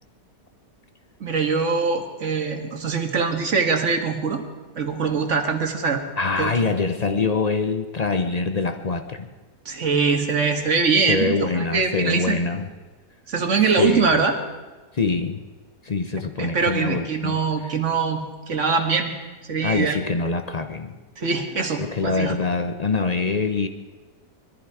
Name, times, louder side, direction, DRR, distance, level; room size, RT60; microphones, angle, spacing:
voice 1, 1.2-4.4 4.8-6.0 6.4-6.5 9.7-12.5 13.3-14.3 16.4-19.1 19.5-20.0 21.2-22.3, right 5 dB, 45° right, 4 dB, 1.9 m, -23 dB
voice 2, 6.2-9.3 11.1-12.7 13.8-14.2 14.9-15.4 15.8-17.4 19.6-21.0 21.8-23.7, left 4 dB, 50° left, 8 dB, 0.4 m, -24 dB
21.0 x 14.0 x 4.8 m, 1.3 s
omnidirectional pair, 1.8 m